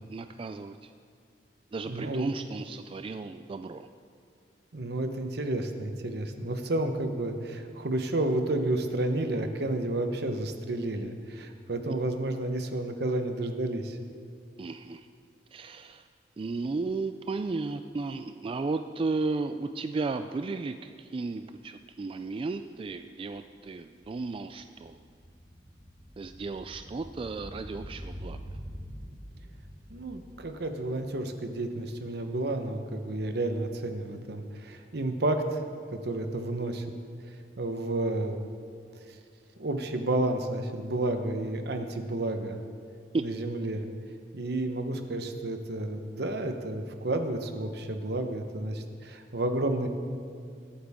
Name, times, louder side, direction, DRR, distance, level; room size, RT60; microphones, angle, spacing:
voice 1, 0.1-0.9 1.7-3.9 14.6-15.0 15.5-16.1 16.4-25.0 26.2-28.4 43.1-43.2, right 3 dB, 30° right, 8 dB, 0.3 m, -34 dB
voice 2, 1.9-2.3 4.7-14.0 29.9-35.6 35.9-36.9 37.6-38.4 38.9-39.1 39.6-42.6 43.2-43.9 44.3-49.9, right 2 dB, 65° right, 6 dB, 1.0 m, -31 dB
sound 1, 21.6-21.7 21.9-32.3 32.6-32.7, equal, 5° right, 1.8 m, -46 dB
21.5 x 8.7 x 3.6 m, 2.3 s
head